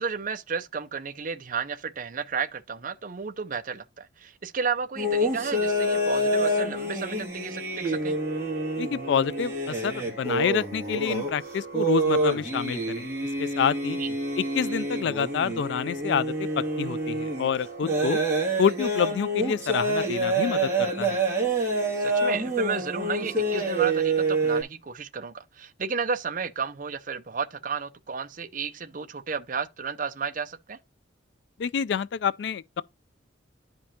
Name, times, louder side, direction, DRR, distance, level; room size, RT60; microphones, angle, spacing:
voice 1, 0.0-8.2 14.0-14.1 22.0-30.8, right 5 dB, 40° right, 0.5 m, -32 dB
sound 1, 5.0-24.6, right 2 dB, 15° right, 2.3 m, -27 dB
voice 2, 8.8-13.1 13.4-14.0 14.4-18.2 18.6-21.2 31.6-32.8, left 7 dB, 65° left, 0.3 m, -28 dB
11.5 x 5.2 x 2.8 m
head